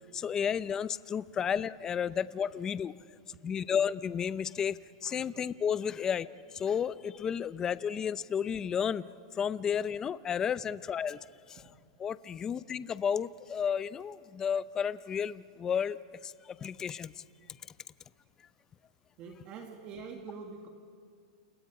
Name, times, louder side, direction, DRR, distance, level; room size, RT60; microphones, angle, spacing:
voice 1, 0.1-2.9 3.4-9.1 9.3-11.2 11.5-11.6 12.0-16.0 16.2-17.1, left 7 dB, 20° left, 16 dB, 0.6 m, -32 dB
voice 2, 19.2-20.7, right 5 dB, 35° right, 3 dB, 2.1 m, -44 dB
30.0 x 30.0 x 4.9 m, 2.2 s
supercardioid pair, 150°, 3 cm